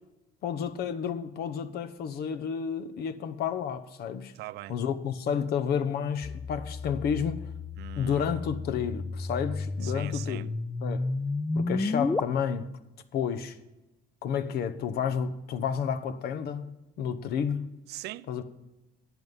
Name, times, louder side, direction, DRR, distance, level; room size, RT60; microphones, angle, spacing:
voice 1, 0.4-4.3 4.7-7.5 8.0-10.5 10.8-11.1 11.5-12.7 13.1-13.6 14.2-16.7 17.0-17.7 18.3-18.4, left 7 dB, 70° left, 1.0 m, -31 dB
voice 2, 4.3-4.8 7.8-8.4 9.8-10.5 17.9-18.4, right 16 dB, 75° right, 0.4 m, -41 dB
sound 1, 6.2-12.2, left 3 dB, 15° left, 0.4 m, -32 dB
10.5 x 8.2 x 5.5 m
cardioid pair, 110°, 17 cm